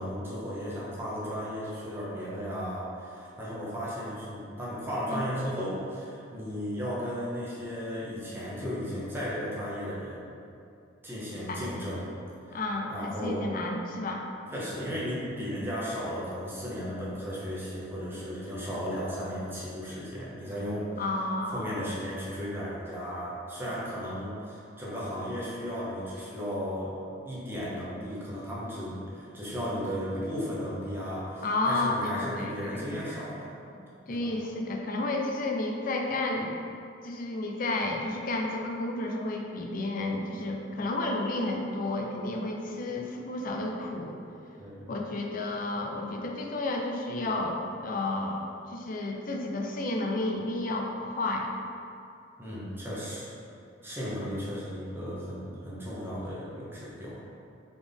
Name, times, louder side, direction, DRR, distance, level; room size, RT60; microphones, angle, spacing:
voice 1, 0.0-10.3 11.0-12.2 12.4-12.6 12.9-13.5 14.5-21.0 21.5-26.9 27.2-33.5 34.1-34.3 44.6-44.9 52.4-53.3 53.8-57.2, equal, 10° right, -8 dB, 0.8 m, -35 dB
voice 2, 11.5-11.9 12.5-14.3 21.0-21.8 31.4-33.0 33.7-36.5 37.0-44.2 44.9-51.5, left 2 dB, 45° left, 2 dB, 0.4 m, -31 dB
4.0 x 3.5 x 3.5 m, 2.5 s
head